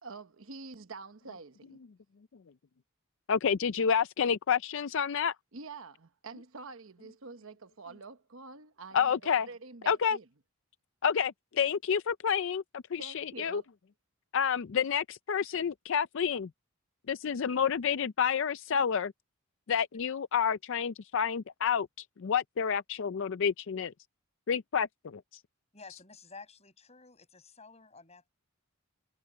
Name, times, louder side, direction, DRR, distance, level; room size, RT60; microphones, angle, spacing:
voice 1, 0.0-1.8 5.5-10.2 13.0-13.7, right 4 dB, 65° right, 1.1 m, -47 dB
voice 2, 3.3-5.3 8.9-9.5 9.9-10.2 11.0-13.6 14.3-16.5 17.1-19.1 19.7-23.9 24.5-25.2, left 7 dB, 60° left, 0.4 m, -29 dB
voice 3, 25.7-28.3, left 4 dB, 30° left, 7.9 m, -52 dB
head